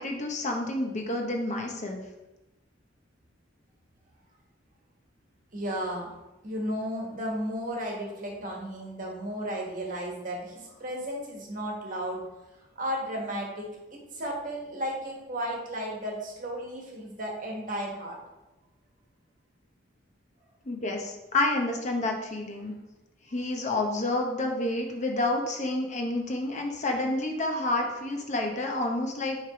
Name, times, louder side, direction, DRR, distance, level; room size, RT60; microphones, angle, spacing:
voice 1, 0.0-2.0 20.7-22.7 23.3-29.4, left 2 dB, 40° left, 2 dB, 0.8 m, -29 dB
voice 2, 5.5-6.1 6.4-12.2 12.8-18.2, equal, 45° right, -1 dB, 1.4 m, -34 dB
6.1 x 3.3 x 4.9 m, 0.99 s
head